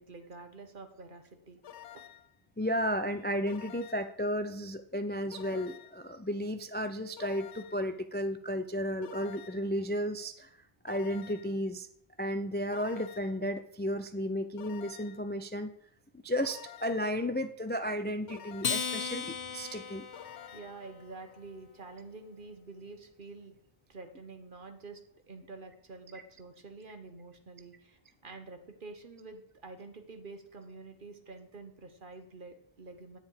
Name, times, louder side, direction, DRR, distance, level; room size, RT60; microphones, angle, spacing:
voice 1, 0.0-1.6 1.9-2.0 20.5-23.5 23.9-33.2, right 3 dB, 50° right, 7 dB, 1.4 m, -48 dB
sound 1, 1.6-2.3 3.5-4.2 5.3-6.1 7.2-7.9 9.0-9.8 10.9-11.6 12.7-13.5 14.6-15.3 16.4-17.2 18.3-19.0 20.1-20.9, left 10 dB, 85° left, 0.9 m, -50 dB
voice 2, 2.6-10.5 10.8-11.9 12.2-15.7 16.2-20.0, equal, 15° left, 8 dB, 0.3 m, -33 dB
Acoustic guitar, 18.6-21.3, left 6 dB, 60° left, 1.1 m, -36 dB
10.5 x 9.2 x 4.9 m, 0.67 s
omnidirectional pair, 1.1 m